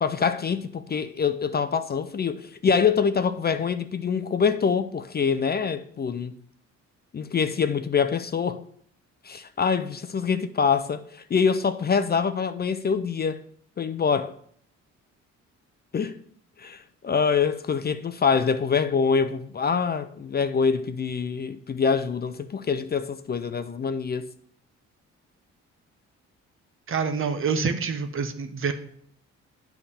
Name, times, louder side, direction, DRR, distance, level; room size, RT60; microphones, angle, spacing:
voice 1, 0.0-6.3 7.1-8.6 9.2-13.4 13.8-14.3 15.9-16.1 16.6-24.3, left 6 dB, 35° left, 0.5 m, -25 dB
voice 2, 26.9-28.7, right 5 dB, 45° right, 1.0 m, -26 dB
9.2 x 3.5 x 6.9 m
cardioid pair, 90°, 30 cm